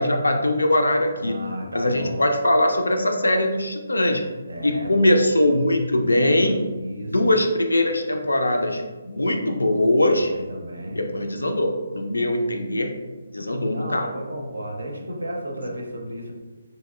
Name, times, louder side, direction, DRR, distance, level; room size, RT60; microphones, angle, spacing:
voice 1, 0.0-1.5 1.7-4.3 4.6-6.6 7.1-10.3 10.9-13.0 13.3-14.1, left 1 dB, 75° left, 4 dB, 0.4 m, -21 dB
voice 2, 1.2-2.3 4.5-5.4 6.7-7.4 10.0-11.0 13.7-16.3, equal, 70° right, 1 dB, 0.6 m, -33 dB
3.0 x 2.8 x 2.3 m, 1.3 s
figure-of-eight pair, 140°, 0 cm